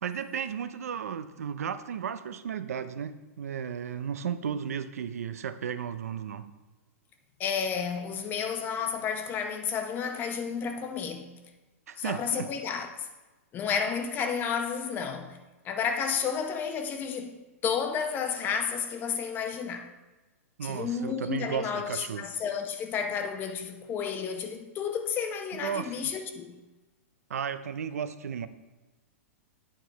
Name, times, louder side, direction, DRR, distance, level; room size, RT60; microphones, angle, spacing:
voice 1, 0.0-6.5 11.9-12.5 20.6-22.3 25.5-26.1 27.3-28.5, right 8 dB, 85° right, 0.5 m, -34 dB
voice 2, 7.4-11.4 12.0-13.1 13.5-15.4 15.6-17.4 17.6-19.9 20.6-26.6, left 6 dB, 25° left, 0.7 m, -31 dB
9.1 x 4.4 x 4.6 m
hypercardioid pair, 140°, 8 cm